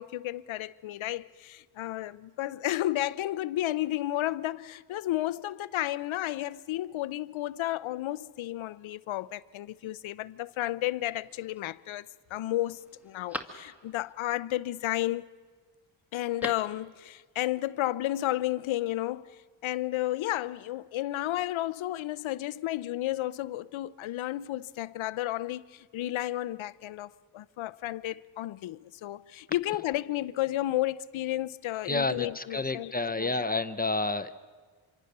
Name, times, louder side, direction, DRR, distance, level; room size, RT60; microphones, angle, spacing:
voice 1, 0.0-15.2 16.1-33.5, left 15 dB, 75° left, 0.7 m, -32 dB
Telephone, 11.0-11.6 12.1-12.2 12.6-14.1 16.1-16.8 17.1-17.2, equal, 5° right, 1.8 m, -42 dB
voice 2, 31.9-34.4, left 2 dB, 20° left, 0.8 m, -30 dB
26.0 x 24.0 x 6.7 m
cardioid pair, 85°, 47 cm